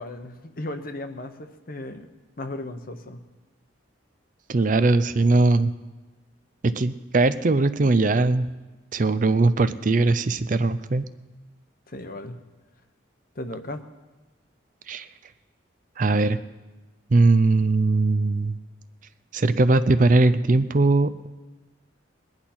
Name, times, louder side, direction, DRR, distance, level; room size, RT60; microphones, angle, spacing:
voice 1, 0.0-2.1 2.4-3.2 11.9-12.4 13.4-13.8, left 1 dB, 50° left, 8 dB, 1.0 m, -35 dB
voice 2, 4.5-5.7 6.6-8.5 8.9-11.1 14.9-15.1 16.0-16.4 17.1-18.6 19.3-21.3, right 3 dB, 45° right, 12 dB, 0.5 m, -20 dB
20.5 x 10.5 x 4.3 m, 1.2 s
head